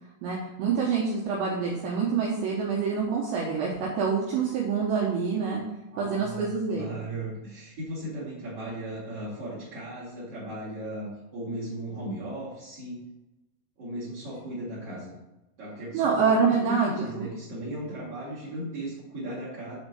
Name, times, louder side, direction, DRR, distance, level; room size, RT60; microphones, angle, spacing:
voice 1, 0.2-5.6 6.0-7.0 15.9-16.9 17.2-17.3, right 5 dB, 75° right, -3 dB, 3.0 m, -26 dB
voice 2, 5.9-13.0 13.8-15.1 15.6-19.7, right 1 dB, 40° right, -10 dB, 2.8 m, -36 dB
7.2 x 4.3 x 6.8 m, 0.97 s
omnidirectional pair, 5.8 m